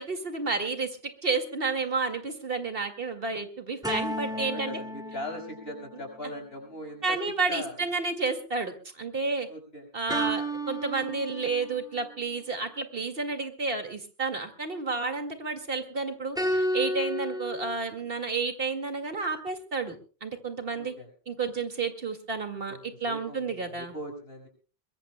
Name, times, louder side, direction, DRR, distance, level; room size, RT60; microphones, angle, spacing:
voice 1, 0.0-4.8 7.0-9.5 9.9-20.9 21.3-23.9, right 4 dB, 65° right, 6 dB, 2.3 m, -31 dB
sound 1, 3.8-6.4 10.1-11.9 16.4-17.8, equal, 5° right, 2.3 m, -32 dB
voice 2, 4.3-7.2 7.5-7.9 9.5-9.9 20.7-21.1 22.7-24.5, left 1 dB, 75° left, 3 dB, 5.9 m, -40 dB
23.0 x 22.0 x 2.2 m, 0.38 s
omnidirectional pair, 1.0 m